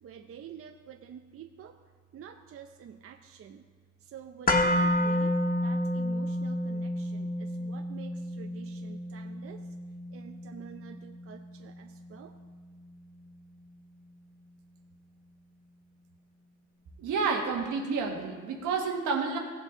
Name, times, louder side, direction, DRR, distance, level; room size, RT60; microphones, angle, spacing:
voice 1, 0.0-1.8 2.1-3.6 4.0-5.4 5.6-9.6 10.1-12.3, right 8 dB, 50° right, 5 dB, 0.6 m, -48 dB
sound 1, 4.5-12.5 12.9-13.0, left 1 dB, 30° left, 1.3 m, -30 dB
voice 2, 17.0-19.4, right 5 dB, 80° right, 2 dB, 1.7 m, -30 dB
16.5 x 7.3 x 3.8 m, 1.5 s
cardioid pair, 90°, 30 cm